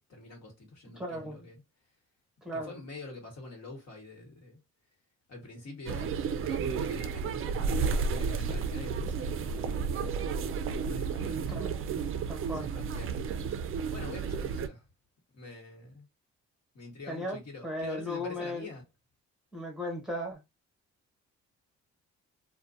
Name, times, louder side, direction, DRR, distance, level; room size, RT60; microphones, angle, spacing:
voice 1, 0.0-1.6 2.5-4.6 5.3-10.1 10.9-11.7 12.5-13.5 13.9-14.9 15.3-16.1 16.7-18.8, left 2 dB, 55° left, 1.3 m, -46 dB
voice 2, 1.0-1.4 2.4-2.7 11.5-11.7 12.3-12.7 17.1-18.7 19.5-20.4, left 1 dB, ahead, 1.1 m, -36 dB
sound 1, 5.9-14.7, right 5 dB, 45° right, 0.4 m, -32 dB
2.4 x 2.2 x 2.5 m
cardioid pair, 90°, 30 cm